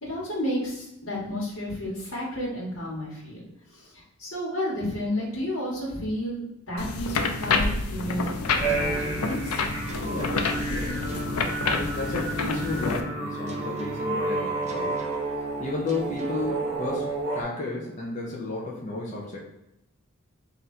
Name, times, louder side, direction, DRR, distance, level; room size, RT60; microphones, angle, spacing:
voice 1, 0.0-3.4 3.7-9.8, left 1 dB, 65° left, -6 dB, 1.4 m, -32 dB
sound 1, 6.8-13.0, left 4 dB, 90° left, 0.5 m, -28 dB
sound 2, 8.6-17.4, right 2 dB, 50° right, 1.5 m, -31 dB
sound 3, 8.7-12.6 13.5-17.3, right 1 dB, 30° right, 0.4 m, -43 dB
voice 2, 10.0-11.0 11.7-15.0 15.6-19.4, left 3 dB, 30° left, -4 dB, 0.7 m, -33 dB
3.7 x 2.7 x 4.2 m, 0.85 s
head